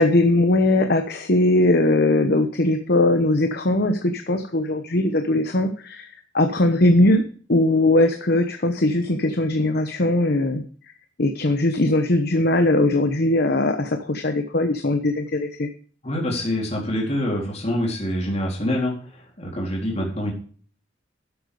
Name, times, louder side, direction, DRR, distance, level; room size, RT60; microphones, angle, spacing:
voice 1, 0.0-6.1 6.3-10.6 11.2-15.7, left 2 dB, 55° left, 7 dB, 1.1 m, -20 dB
voice 2, 16.0-20.3, left 1 dB, 35° left, -2 dB, 3.9 m, -26 dB
12.0 x 8.1 x 5.0 m, 0.43 s
head